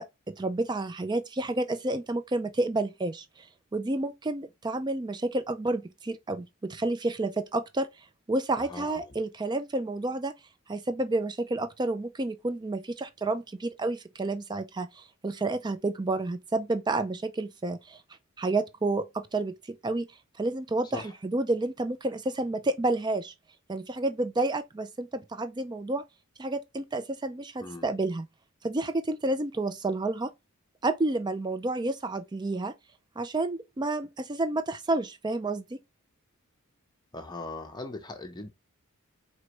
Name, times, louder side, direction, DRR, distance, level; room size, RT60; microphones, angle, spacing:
voice 1, 0.0-3.5 3.7-7.9 8.3-10.3 10.7-18.0 18.4-20.1 20.4-23.3 23.7-26.0 26.4-28.3 28.6-30.3 30.8-32.7 33.2-35.6, right 2 dB, 20° right, 0.4 m, -30 dB
voice 2, 8.6-9.0 20.9-21.1 27.6-27.9 37.1-38.5, left 2 dB, 20° left, 0.7 m, -39 dB
4.6 x 3.0 x 3.0 m
head